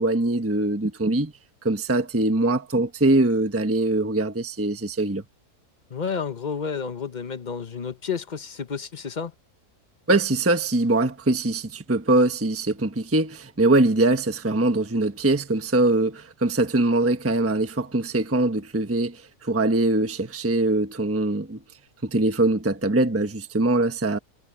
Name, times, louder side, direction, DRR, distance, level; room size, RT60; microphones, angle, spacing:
voice 1, 0.0-1.3 1.6-5.2 10.1-21.6 22.0-24.2, right 2 dB, 10° right, 1.0 m, -22 dB
voice 2, 5.9-9.3, left 6 dB, 35° left, 1.0 m, -31 dB
omnidirectional pair, 1.6 m